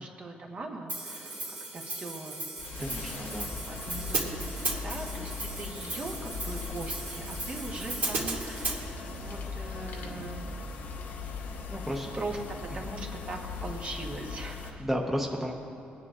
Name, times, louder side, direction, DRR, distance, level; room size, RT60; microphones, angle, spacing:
voice 1, 0.0-2.4 3.1-10.5 12.1-12.4 12.7-14.8, right 2 dB, 40° right, 1 dB, 1.1 m, -41 dB
Hi-hat, 0.9-8.8, right 2 dB, 65° right, 2.4 m, -36 dB
sound 1, 2.6-14.7, left 4 dB, 80° left, 1.0 m, -39 dB
voice 2, 2.8-3.5 11.7-12.1 14.8-15.5, equal, 5° right, -1 dB, 0.9 m, -32 dB
21.5 x 9.5 x 2.5 m, 2.7 s
cardioid pair, 135°, 3 cm